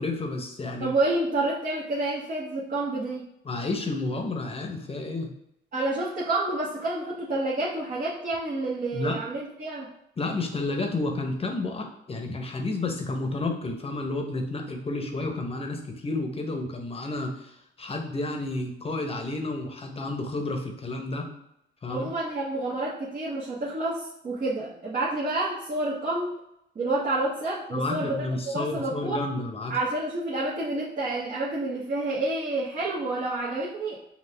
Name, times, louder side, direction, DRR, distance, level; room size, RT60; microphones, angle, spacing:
voice 1, 0.0-0.9 3.4-5.3 8.9-9.2 10.2-21.3 21.8-22.1 27.7-29.7, left 2 dB, 30° left, 3 dB, 0.9 m, -31 dB
voice 2, 0.8-3.2 5.7-9.9 21.9-26.3 26.7-29.2 29.7-34.0, right 2 dB, 45° right, -7 dB, 1.1 m, -29 dB
5.5 x 2.4 x 3.3 m, 0.81 s
cardioid pair, 90°, 20 cm